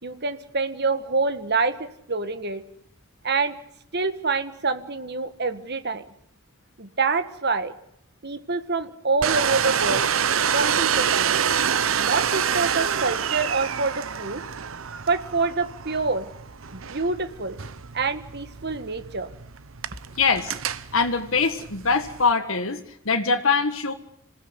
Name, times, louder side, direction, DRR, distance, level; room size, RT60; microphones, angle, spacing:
voice 1, 0.0-2.6 3.2-3.6 3.9-6.0 6.8-7.7 8.2-10.1 10.5-11.4 12.0-14.4 15.1-16.3 16.7-17.6 17.9-19.3, right 4 dB, 50° right, 10 dB, 1.8 m, -26 dB
Domestic sounds home sounds, 9.2-22.3, right 8 dB, 70° right, 0.9 m, -27 dB
voice 2, 20.2-20.5 20.9-23.9, left 4 dB, 70° left, 4 dB, 1.7 m, -23 dB
27.0 x 17.0 x 8.2 m, 0.75 s
head